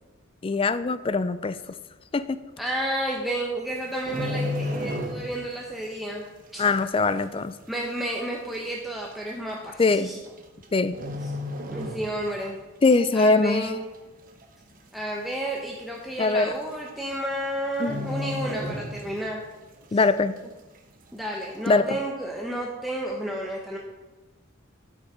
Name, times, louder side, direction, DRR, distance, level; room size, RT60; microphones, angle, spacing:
voice 1, 0.4-1.6 2.1-2.4 6.6-7.5 9.8-10.1 10.7-11.0 12.8-13.7 16.2-16.5 17.8-18.1 19.9-20.4 21.7-22.0, left 3 dB, 25° left, 13 dB, 0.3 m, -22 dB
voice 2, 2.6-6.2 6.5-6.6 7.7-10.2 11.7-12.6 13.1-13.8 14.9-19.4 19.9-20.0 21.1-23.8, right 1 dB, ahead, -2 dB, 0.8 m, -31 dB
sound 1, 3.8-5.6 5.8-6.1 6.7-6.8 7.7-7.8 8.0-8.1 8.9-9.1 10.2-10.6 10.9-12.5 12.8-13.1 13.5-14.1 14.4-14.5 14.7-14.8 15.3-15.4 16.3-16.4 16.7-17.0 17.3-17.4 17.8-19.4 19.8-19.9, left 1 dB, 40° right, 1.0 m, -33 dB
12.5 x 5.4 x 4.8 m, 1.2 s
head